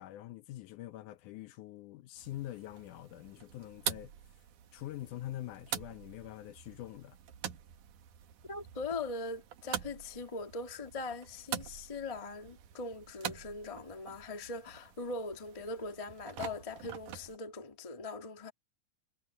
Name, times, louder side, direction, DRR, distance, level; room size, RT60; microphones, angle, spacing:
voice 1, 0.0-4.1 4.7-7.2, left 14 dB, 75° left, 2.1 m, -44 dB
sound 1, 2.2-17.4, right 10 dB, 70° right, 2.8 m, -45 dB
voice 2, 8.5-18.5, left 3 dB, 25° left, 0.7 m, -41 dB
omnidirectional pair, 3.9 m